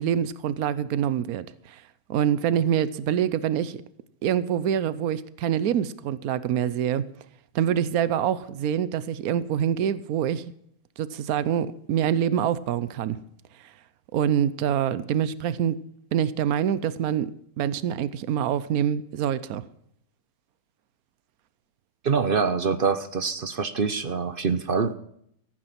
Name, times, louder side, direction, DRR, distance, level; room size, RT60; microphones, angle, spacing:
voice 1, 0.0-1.8 2.1-3.8 4.2-7.0 7.5-10.4 11.0-13.2 14.1-15.8 16.1-17.3 17.6-19.6, right 9 dB, 80° right, 1.2 m, -25 dB
voice 2, 22.0-25.0, right 5 dB, 45° right, 0.9 m, -25 dB
15.5 x 8.9 x 5.8 m
omnidirectional pair, 1.5 m